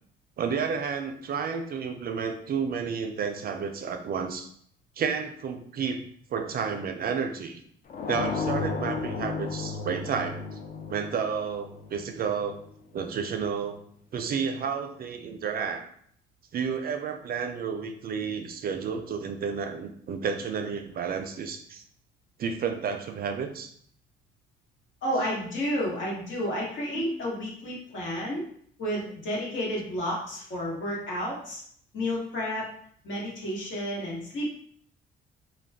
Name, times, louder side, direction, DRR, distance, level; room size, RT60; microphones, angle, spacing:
voice 1, 0.4-4.5 5.0-6.0 6.3-7.6 8.1-10.6 10.9-12.6 12.9-13.8 14.1-15.9 16.5-21.8 22.4-23.7 26.9-27.1, right 6 dB, 50° right, 6 dB, 0.4 m, -31 dB
sound 1, 7.9-12.6, left 4 dB, 45° left, 0.5 m, -33 dB
voice 2, 25.0-28.4 28.8-31.6 31.9-32.6 33.0-34.4, equal, 70° left, -4 dB, 1.3 m, -31 dB
2.3 x 2.2 x 3.4 m, 0.62 s
cardioid pair, 90°, 20 cm